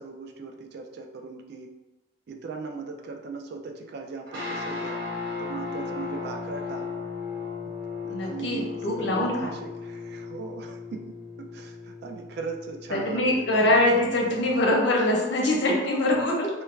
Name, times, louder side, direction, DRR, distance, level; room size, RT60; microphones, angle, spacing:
voice 1, 0.0-1.7 2.3-5.0 5.4-6.9 8.0-13.8, right 4 dB, 60° right, 4 dB, 0.3 m, -38 dB
sound 1, 4.3-14.8, left 4 dB, 75° right, 0.9 m, -36 dB
voice 2, 8.1-9.5 12.9-16.5, left 1 dB, 70° left, -1 dB, 0.6 m, -23 dB
2.3 x 2.1 x 3.1 m, 1.1 s
head